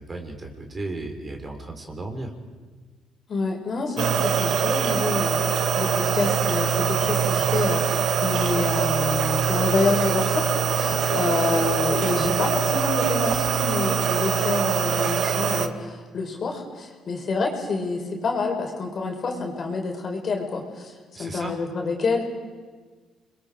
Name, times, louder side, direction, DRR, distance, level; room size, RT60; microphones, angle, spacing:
voice 1, 0.0-2.3 21.1-21.6, right 2 dB, 30° right, 3 dB, 3.8 m, -35 dB
voice 2, 3.3-20.9 21.2-22.2, left 4 dB, 45° left, 1 dB, 4.6 m, -28 dB
sound 1, 4.0-15.7, right 6 dB, 65° right, 1.5 m, -23 dB
30.0 x 22.0 x 5.0 m, 1.4 s
cardioid pair, 85°, 0 cm